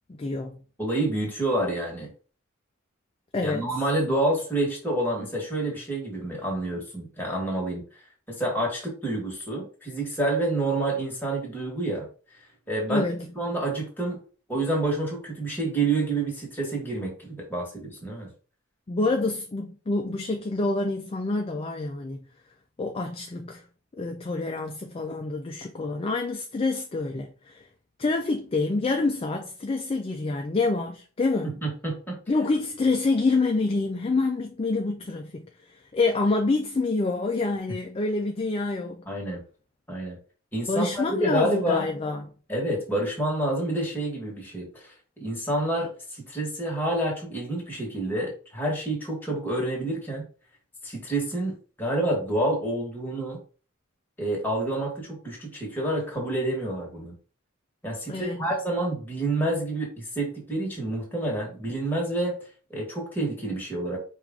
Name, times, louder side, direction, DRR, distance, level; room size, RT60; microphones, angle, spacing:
voice 1, 0.1-0.6 3.3-3.6 12.9-13.2 18.9-22.3 22.8-23.6 24.0-27.7 28.0-31.6 32.3-39.1 40.7-42.3 58.1-58.4, left 3 dB, 25° left, 0.3 m, -27 dB
voice 2, 0.8-2.1 3.4-12.1 12.7-13.1 13.3-14.2 14.5-18.3 31.6-32.2 39.1-39.4 39.9-40.2 40.5-41.9 42.5-44.9 45.2-50.2 50.8-53.4 54.2-57.1 57.8-62.4 62.7-64.0, right 1 dB, 10° left, 1.3 m, -28 dB
4.8 x 2.4 x 3.5 m
head